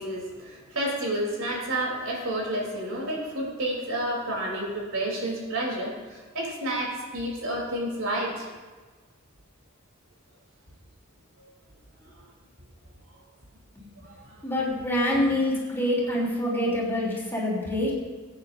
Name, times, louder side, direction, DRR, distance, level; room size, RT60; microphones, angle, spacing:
voice 1, 0.0-8.5 14.0-14.1, right 1 dB, 80° right, -2 dB, 3.4 m, -30 dB
voice 2, 14.4-17.9, left 1 dB, 10° left, -5 dB, 3.2 m, -26 dB
21.0 x 9.5 x 2.7 m, 1.4 s
head